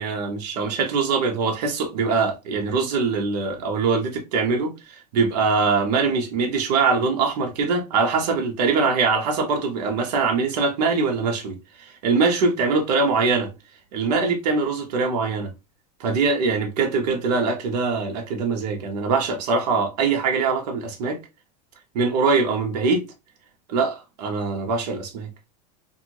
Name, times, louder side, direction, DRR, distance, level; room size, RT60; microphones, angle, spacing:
voice 1, 0.0-13.5 13.9-15.5 16.0-21.2 21.9-23.0 23.7-25.3, right 4 dB, 70° right, 1.0 m, -23 dB
2.6 x 2.6 x 2.9 m
supercardioid pair, 145°, 21 cm